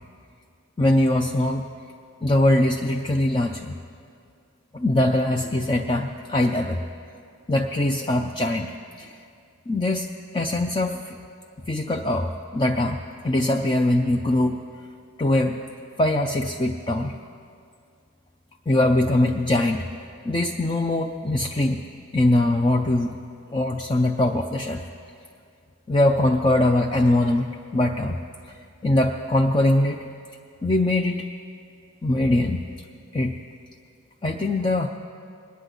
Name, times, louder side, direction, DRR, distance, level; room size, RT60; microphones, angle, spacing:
voice 1, 0.8-1.7 2.2-3.8 4.7-6.8 7.5-9.2 9.7-10.1 10.3-11.2 11.7-13.0 13.2-14.6 15.2-15.6 16.0-17.2 18.7-19.8 20.3-21.8 22.1-23.1 23.5-24.8 25.9-28.2 28.8-30.0 30.6-31.3 32.0-32.6 33.1-33.4 34.2-34.9, left 1 dB, 20° left, 2 dB, 0.4 m, -22 dB
21.5 x 9.5 x 3.9 m, 2.3 s
head